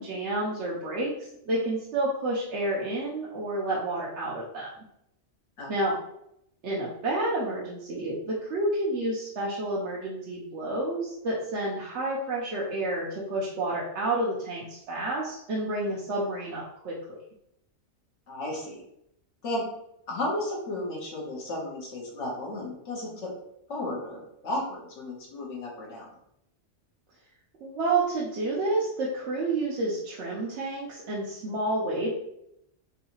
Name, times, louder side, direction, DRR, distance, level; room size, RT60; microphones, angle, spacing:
voice 1, 0.0-4.7 5.7-6.0 6.6-17.2 27.6-32.1, right 2 dB, 70° right, -5 dB, 1.0 m, -30 dB
voice 2, 18.3-18.8 19.4-19.6 20.1-23.3 23.7-26.1 31.5-31.6, left 1 dB, 75° left, -3 dB, 1.4 m, -33 dB
3.9 x 2.7 x 2.9 m, 0.78 s
omnidirectional pair, 1.3 m